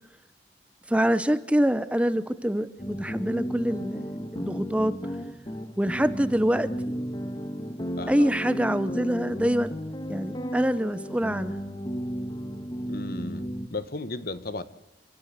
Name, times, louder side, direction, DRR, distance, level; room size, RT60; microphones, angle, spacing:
voice 1, 0.9-5.0 5.8-7.0 8.1-9.7 10.1-11.5, equal, 5° right, 13 dB, 0.8 m, -25 dB
sound 1, 2.8-13.7, equal, 25° left, 1.4 m, -34 dB
voice 2, 8.0-8.3 12.8-14.6, left 2 dB, 55° left, 13 dB, 1.4 m, -35 dB
29.5 x 13.5 x 9.3 m, 0.92 s
head